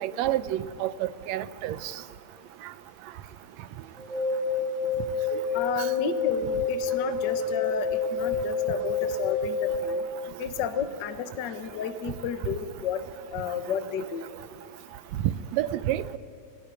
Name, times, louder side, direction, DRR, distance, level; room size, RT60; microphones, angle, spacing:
voice 1, 0.0-1.7 15.5-16.2, right 13 dB, 75° right, 1.7 m, -29 dB
sound 1, 4.0-10.0, left 5 dB, ahead, 5.5 m, -28 dB
voice 2, 5.5-10.0 10.4-13.0 13.3-14.2, left 7 dB, 60° left, 1.1 m, -32 dB
25.0 x 17.0 x 8.9 m
omnidirectional pair, 3.7 m